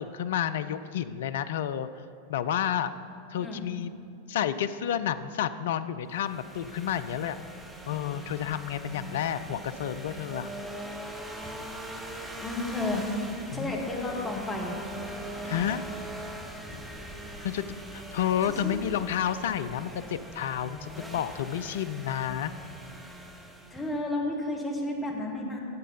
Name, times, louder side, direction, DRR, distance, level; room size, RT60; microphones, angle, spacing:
voice 1, 0.0-1.9 2.3-2.9 3.3-3.9 4.3-7.4 7.9-10.5 13.5-13.7 15.4-15.8 16.7-16.8 17.4-17.6 17.9-22.5, left 9 dB, 55° left, 12 dB, 0.4 m, -30 dB
sound 1, 6.1-24.0, right 1 dB, 5° right, 0.9 m, -41 dB
voice 2, 12.4-13.1 13.5-14.8 18.6-18.8 23.7-25.6, left 2 dB, 10° left, -1 dB, 1.5 m, -32 dB
9.3 x 7.7 x 5.4 m, 2.8 s
figure-of-eight pair, 90°, 0 cm